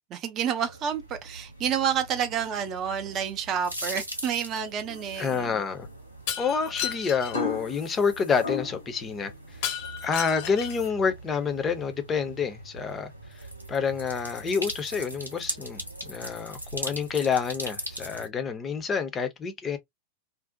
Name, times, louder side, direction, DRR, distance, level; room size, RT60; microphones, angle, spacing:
voice 1, 0.1-5.6, right 8 dB, 30° right, 0.4 m, -29 dB
sound 1, 0.6-18.3, right 1 dB, 90° right, 0.6 m, -41 dB
sound 2, 4.9-6.0 7.3-9.0 9.4-9.9 10.4-10.9, left 5 dB, 80° left, 0.7 m, -36 dB
voice 2, 5.2-5.9 6.4-9.3 10.0-19.8, left 6 dB, 20° left, 0.5 m, -28 dB
Shatter, 6.3-7.4 9.6-10.9, left 9 dB, 50° left, 0.8 m, -33 dB
2.5 x 2.0 x 2.5 m
figure-of-eight pair, 90°, 0 cm